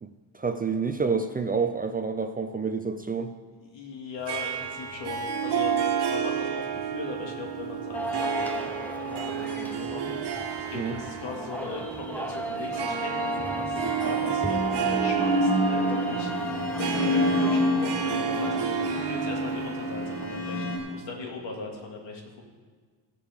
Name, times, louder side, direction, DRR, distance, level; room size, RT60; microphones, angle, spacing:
voice 1, 0.3-3.3 10.7-11.0, right 5 dB, 20° right, 7 dB, 0.4 m, -28 dB
voice 2, 3.7-5.8 6.1-8.7 9.0-16.3 17.0-22.4, left 3 dB, 75° left, 0 dB, 2.4 m, -39 dB
Harp, 4.3-21.0, right 7 dB, 65° right, 1.5 m, -31 dB
sound 1, 7.9-19.7, right 1 dB, 5° left, 0.8 m, -36 dB
sound 2, 12.4-13.4 14.2-20.8, left 1 dB, 30° left, 2.4 m, -28 dB
20.5 x 6.9 x 3.7 m, 1.5 s
cardioid pair, 140°, 44 cm